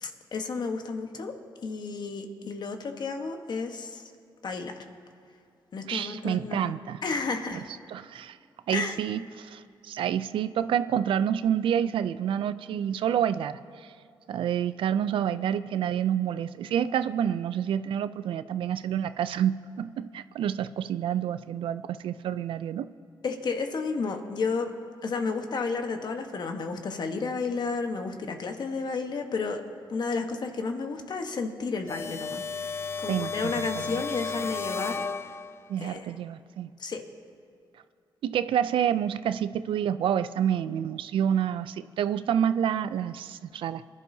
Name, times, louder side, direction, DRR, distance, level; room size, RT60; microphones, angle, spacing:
voice 1, 0.0-1.3 1.6-4.0 4.4-4.7 5.7-6.7 7.0-7.6 8.7-9.0 23.2-24.7 25.0-29.6 29.9-32.4 33.0-35.0 35.8-36.0 36.8-37.0, left 4 dB, 55° left, 5 dB, 1.1 m, -32 dB
voice 2, 5.8-7.0 7.5-7.6 7.9-8.4 8.7-13.9 14.3-22.9 33.1-34.0 35.7-36.7 38.2-43.9, right 9 dB, 80° right, 14 dB, 0.4 m, -28 dB
sound 1, 31.9-35.8, left 5 dB, 30° left, 0.4 m, -34 dB
24.0 x 11.0 x 2.7 m, 2.4 s
cardioid pair, 90°, 9 cm